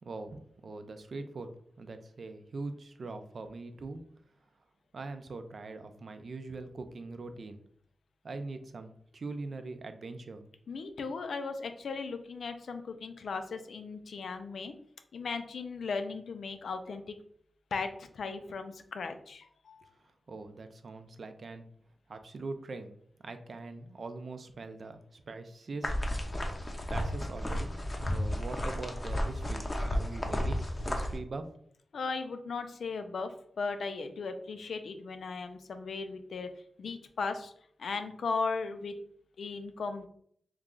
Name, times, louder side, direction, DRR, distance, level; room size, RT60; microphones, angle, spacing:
voice 1, 0.0-4.0 4.9-7.6 8.2-10.5 20.3-21.7 22.1-22.9 23.2-25.9 26.9-27.7 28.1-30.6 30.9-31.5, right 3 dB, 60° right, 8 dB, 0.4 m, -42 dB
voice 2, 10.7-14.7 15.1-17.1 17.7-19.9 31.9-36.5 36.8-37.5 37.8-39.0 39.4-40.1, left 4 dB, 80° left, 8 dB, 0.4 m, -37 dB
sound 1, 25.8-31.2, left 1 dB, 25° left, 0.6 m, -33 dB
3.1 x 2.4 x 3.7 m, 0.64 s
wide cardioid pair, 80°, 0 cm